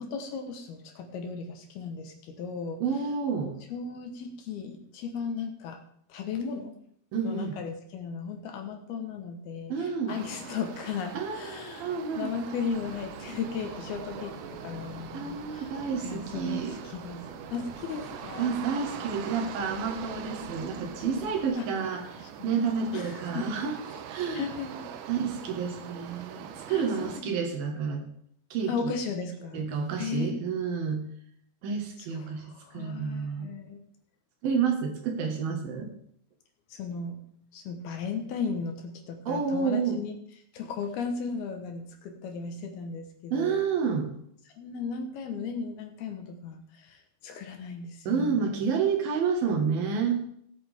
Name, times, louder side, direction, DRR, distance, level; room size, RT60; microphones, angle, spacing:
voice 1, 0.0-2.8 3.7-5.8 6.1-6.7 7.2-11.9 12.2-15.7 16.0-17.2 17.5-18.6 21.6-21.7 22.5-22.6 22.9-23.6 24.3-24.9 26.7-27.4 28.7-29.7 30.0-30.4 32.1-33.8 36.7-37.2 37.5-40.1 40.5-43.6 44.6-48.5, left 5 dB, 70° left, 4 dB, 3.0 m, -36 dB
voice 2, 2.8-3.6 7.1-7.5 9.7-10.2 11.1-11.4 11.8-12.3 15.1-16.8 18.4-23.7 24.1-24.5 25.1-28.0 28.5-28.9 29.5-31.0 31.6-33.5 34.4-35.9 39.3-40.0 43.3-44.1 48.0-50.2, right 6 dB, 65° right, 4 dB, 3.2 m, -29 dB
sound 1, 10.1-27.2, right 8 dB, 85° right, 3.1 m, -43 dB
sound 2, 12.7-21.5, right 1 dB, 35° right, 3.5 m, -48 dB
18.5 x 8.6 x 3.6 m, 0.66 s
omnidirectional pair, 5.0 m